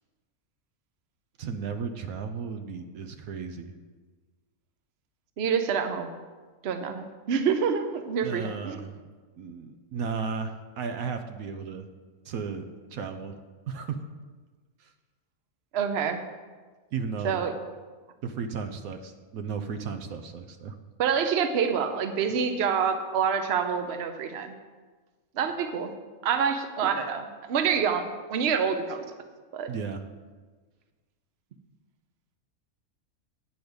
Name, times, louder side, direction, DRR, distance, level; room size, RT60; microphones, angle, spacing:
voice 1, 1.4-3.7 8.2-9.0 9.4-11.9 12.2-12.6 12.9-13.3 13.7-14.1 14.8-14.9 16.9-17.4 18.2-20.7 29.7-30.0, right 5 dB, 75° right, 7 dB, 1.1 m, -34 dB
voice 2, 5.4-6.1 6.6-8.8 15.7-16.2 17.2-17.5 21.0-24.5 25.3-25.9 26.2-29.0 29.5-29.7, right 6 dB, 55° right, 7 dB, 0.9 m, -27 dB
9.5 x 5.1 x 7.8 m, 1.4 s
omnidirectional pair, 1.5 m